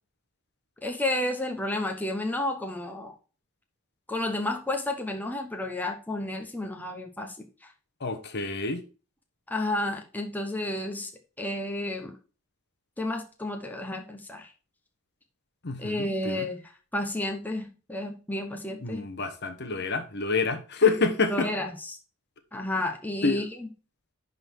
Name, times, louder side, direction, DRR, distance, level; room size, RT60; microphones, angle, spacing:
voice 1, 0.8-3.2 4.1-7.7 9.5-11.1 11.4-12.2 13.0-14.5 15.8-19.1 21.3-22.0 22.5-23.7, left 1 dB, 10° left, 1.1 m, -31 dB
voice 2, 8.0-8.8 15.6-16.5 18.8-21.5 23.2-23.5, left 4 dB, 50° left, 1.2 m, -27 dB
11.0 x 4.1 x 4.6 m
head